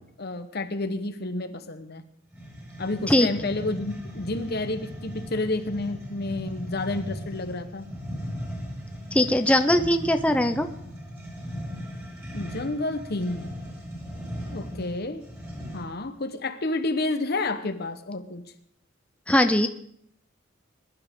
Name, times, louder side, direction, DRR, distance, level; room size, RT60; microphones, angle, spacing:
voice 1, 0.2-2.0 2.8-7.9 12.3-13.5 14.5-15.2 15.7-18.5, left 2 dB, 50° left, 9 dB, 1.0 m, -30 dB
sound 1, 2.3-16.0, equal, 15° right, 5.1 m, -38 dB
voice 2, 9.1-10.7 19.3-19.7, left 1 dB, 5° left, 8 dB, 0.6 m, -20 dB
21.0 x 11.5 x 3.7 m, 0.67 s
head